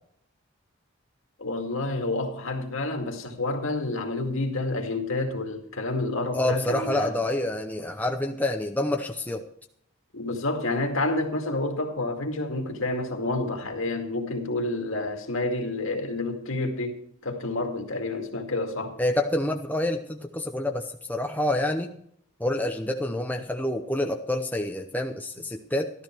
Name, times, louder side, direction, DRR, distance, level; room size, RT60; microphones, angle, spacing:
voice 1, 1.4-7.1 10.1-19.0, left 2 dB, 65° left, 2.1 m, -29 dB
voice 2, 6.3-9.5 19.0-21.9 22.4-25.9, left 1 dB, 10° left, 0.7 m, -27 dB
13.0 x 12.5 x 4.5 m
head